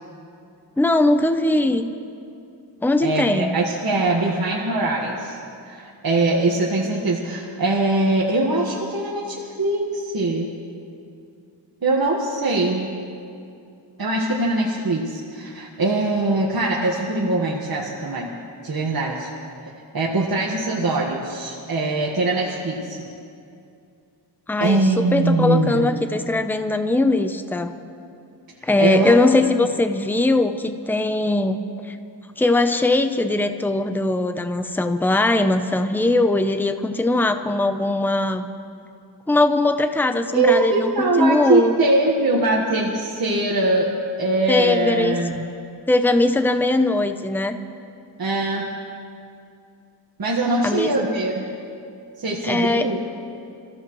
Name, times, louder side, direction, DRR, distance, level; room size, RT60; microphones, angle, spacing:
voice 1, 0.8-1.9 2.8-3.5 24.5-27.7 28.6-32.0 32.4-38.5 39.3-41.8 44.5-45.4 45.9-47.6 50.6-51.1 52.4-52.9, left 2 dB, 5° left, 9 dB, 0.6 m, -20 dB
voice 2, 3.0-5.4 5.6-10.5 11.8-12.9 14.0-18.3 18.6-19.3 19.9-23.0 24.6-25.9 28.8-29.1 40.3-43.9 44.2-45.4 48.2-48.7 50.2-51.4 52.2-53.0, right 2 dB, 55° right, -3 dB, 1.5 m, -22 dB
27.5 x 14.5 x 3.1 m, 2.5 s
wide cardioid pair, 100°, 43 cm